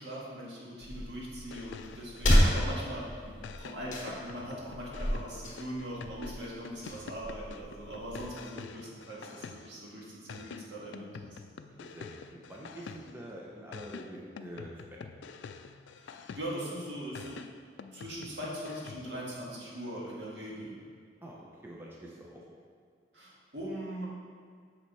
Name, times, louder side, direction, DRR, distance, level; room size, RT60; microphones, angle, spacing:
voice 1, 0.0-11.4 16.0-17.4 17.9-20.7 23.1-24.0, equal, 70° right, -5 dB, 1.9 m, -41 dB
sound 1, 0.8-8.3, equal, 45° left, 1.4 m, -32 dB
sound 2, 1.4-3.0 3.4-9.9 10.3-13.3 13.7-16.7 17.1-19.2, left 5 dB, 75° left, 0.4 m, -47 dB
voice 2, 11.7-15.0 21.2-22.4, right 1 dB, 15° right, -4 dB, 0.9 m, -46 dB
7.9 x 5.9 x 4.2 m, 2.1 s
head